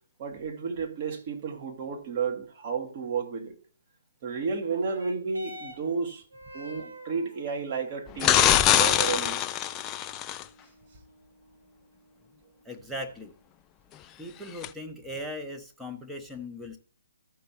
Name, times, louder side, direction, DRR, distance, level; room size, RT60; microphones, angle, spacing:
voice 1, 0.2-3.5 4.2-6.2 6.5-9.4, right 5 dB, 40° right, 1.6 m, -32 dB
sound 1, 4.5-13.5 14.3-14.4, equal, 75° right, 2.4 m, -49 dB
sound 2, 8.2-10.4 14.6-14.7, left 11 dB, 20° left, 0.3 m, -23 dB
voice 2, 12.6-13.3 14.2-16.8, left 1 dB, 5° right, 0.9 m, -38 dB
14.0 x 5.5 x 2.9 m
figure-of-eight pair, 135°, 0 cm